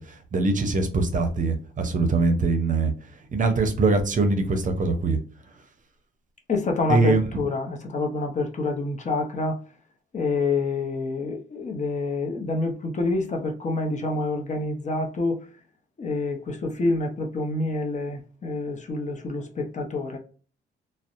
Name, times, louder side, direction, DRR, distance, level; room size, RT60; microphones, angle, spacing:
voice 1, 0.1-2.9 3.3-5.2 6.9-7.3, right 3 dB, 40° right, 0.6 m, -22 dB
voice 2, 6.5-9.6 10.1-15.4 16.0-20.2, left 3 dB, 35° left, 0.7 m, -27 dB
2.6 x 2.1 x 2.4 m
cardioid pair, 90°, 20 cm